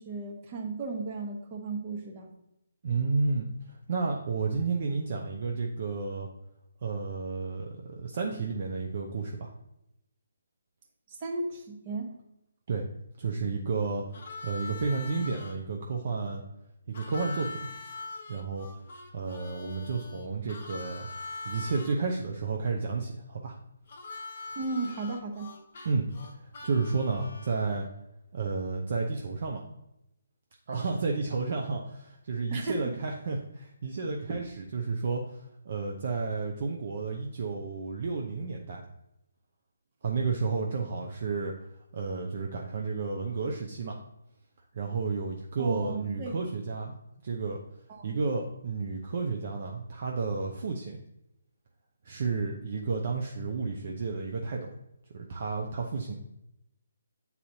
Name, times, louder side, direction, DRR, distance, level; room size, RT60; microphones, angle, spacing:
voice 1, 0.0-2.3 11.1-12.2 24.5-25.5 32.5-32.9 34.3-34.4 45.6-46.3 47.9-48.1, right 3 dB, 30° right, 1 dB, 1.1 m, -35 dB
voice 2, 2.8-3.5 3.9-6.3 6.8-9.5 12.7-12.9 13.2-14.0 14.4-16.4 16.9-17.7 18.3-18.7 19.1-21.1 21.4-23.5 25.8-26.1 26.6-27.9 28.3-29.6 30.7-38.8 40.0-41.5 41.9-44.0 44.7-46.9 47.2-47.6 48.0-51.0 52.0-54.7 55.1-56.1, right 4 dB, 50° right, 1 dB, 0.6 m, -31 dB
Harmonica, 14.1-15.6 16.9-21.9 23.9-27.8, left 3 dB, 45° left, 0.8 m, -43 dB
8.6 x 4.1 x 2.8 m, 0.85 s
figure-of-eight pair, 140°, 0 cm